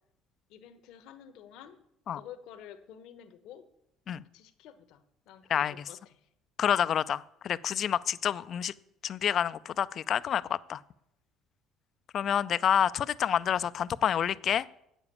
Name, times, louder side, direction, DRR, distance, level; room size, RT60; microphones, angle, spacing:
voice 1, 0.5-1.8 2.1-3.7 4.3-6.3, left 9 dB, 75° left, 10 dB, 1.1 m, -50 dB
voice 2, 6.6-8.7 9.0-10.8 12.1-14.7, left 9 dB, 50° left, 17 dB, 0.4 m, -28 dB
8.4 x 7.1 x 8.4 m, 0.77 s
supercardioid pair, 80°, 0 cm